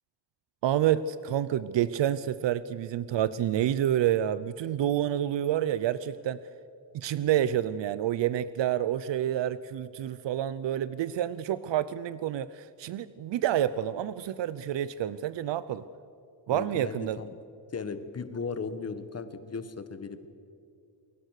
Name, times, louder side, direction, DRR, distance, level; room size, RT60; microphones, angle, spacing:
voice 1, 0.6-6.4 6.9-15.8 16.5-17.2, right 11 dB, 80° right, 16 dB, 0.7 m, -28 dB
voice 2, 16.5-17.3 17.7-20.3, left 5 dB, 35° left, 11 dB, 1.5 m, -36 dB
28.0 x 23.0 x 6.6 m, 2.5 s
wide cardioid pair, 150°, 43 cm